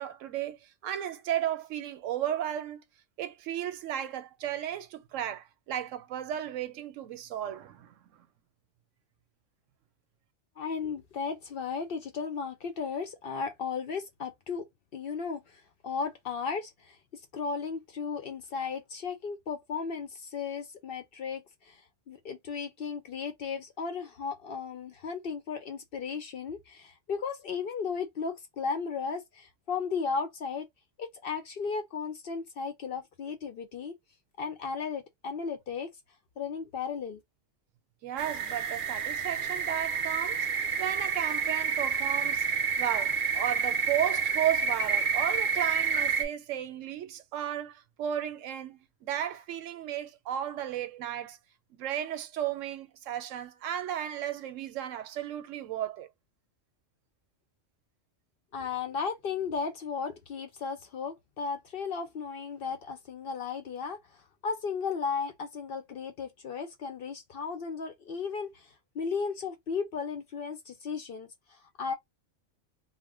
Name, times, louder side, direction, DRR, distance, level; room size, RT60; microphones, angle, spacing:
voice 1, 0.0-2.8 3.2-8.2 38.0-40.5 40.8-42.4 42.8-51.4 51.7-56.1, right 10 dB, 85° right, 0.9 m, -34 dB
voice 2, 10.6-14.6 14.9-21.8 22.1-30.7 31.0-33.9 34.4-35.9 36.4-37.2 58.5-71.9, left 5 dB, 60° left, 0.6 m, -35 dB
sound 1, 38.2-46.3, right 6 dB, 50° right, 0.7 m, -29 dB
2.4 x 2.1 x 3.4 m
omnidirectional pair, 1.3 m